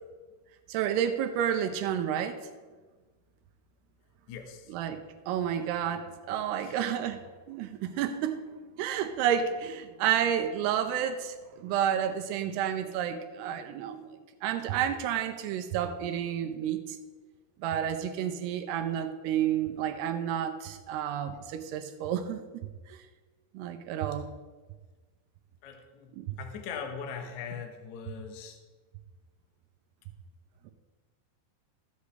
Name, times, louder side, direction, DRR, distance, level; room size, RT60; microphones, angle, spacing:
voice 1, 0.7-2.4 4.7-8.4 8.8-17.0 17.6-23.0 23.5-24.3 26.1-26.4 30.7-30.8, right 9 dB, 80° right, 8 dB, 2.6 m, -31 dB
voice 2, 4.3-4.7 6.6-6.8 14.8-14.9 25.6-26.1 26.4-28.6, left 6 dB, 80° left, 5 dB, 1.6 m, -40 dB
14.5 x 8.3 x 3.3 m, 1.4 s
omnidirectional pair, 4.9 m